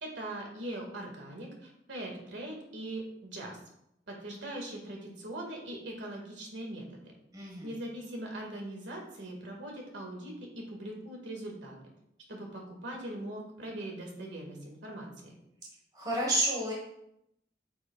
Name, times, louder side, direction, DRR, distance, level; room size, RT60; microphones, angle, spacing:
voice 1, 0.0-3.6 4.1-7.0 7.4-11.8 12.3-15.3, right 1 dB, 85° right, 0 dB, 2.0 m, -41 dB
voice 2, 7.3-7.7 15.9-16.7, right 1 dB, 20° right, -3 dB, 1.4 m, -30 dB
8.5 x 6.4 x 2.4 m, 0.79 s
head